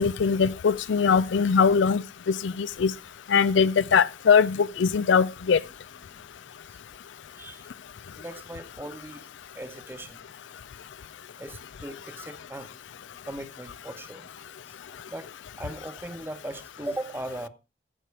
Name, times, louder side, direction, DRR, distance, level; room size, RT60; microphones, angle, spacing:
voice 1, 0.0-2.9 3.3-5.6, left 6 dB, 75° left, 0.4 m, -21 dB
voice 2, 7.3-7.7 8.2-9.3 9.5-10.2 11.4-12.7 13.2-14.3 14.7-14.8 15.1-15.3 15.6-17.5, right 1 dB, 10° right, 0.9 m, -38 dB
15.5 x 5.8 x 4.7 m
head